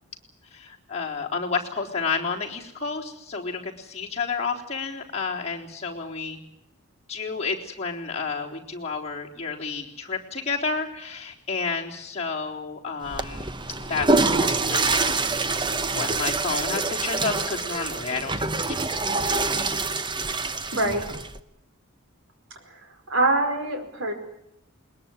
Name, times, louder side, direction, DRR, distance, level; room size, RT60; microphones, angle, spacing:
voice 1, 0.5-6.4 7.1-13.5 13.9-15.0 15.9-19.0, left 4 dB, 30° left, -2 dB, 3.8 m, -31 dB
Water / Toilet flush, 13.0-21.4, right 3 dB, 20° right, 0.9 m, -26 dB
voice 2, 20.7-21.0 22.7-22.8 23.1-24.1, right 2 dB, 70° right, 5 dB, 4.9 m, -24 dB
21.0 x 20.5 x 9.0 m, 0.83 s
head